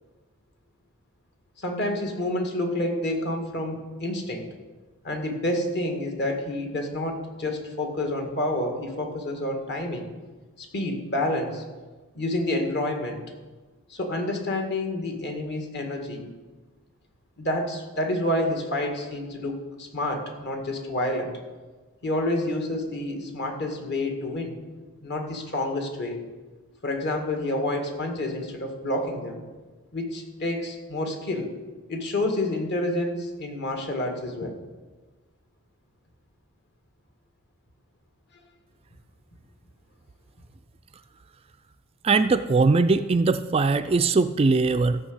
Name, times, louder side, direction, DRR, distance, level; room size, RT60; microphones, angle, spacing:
voice 1, 1.6-4.5 5.0-10.1 10.6-11.6 12.2-13.2 13.9-16.3 17.4-21.3 22.0-24.6 25.0-26.2 26.8-29.4 29.9-31.5 31.9-34.6, left 1 dB, 50° left, 3 dB, 2.0 m, -28 dB
voice 2, 42.0-45.0, right 4 dB, 25° right, 10 dB, 0.3 m, -21 dB
14.0 x 5.9 x 8.0 m, 1.3 s
head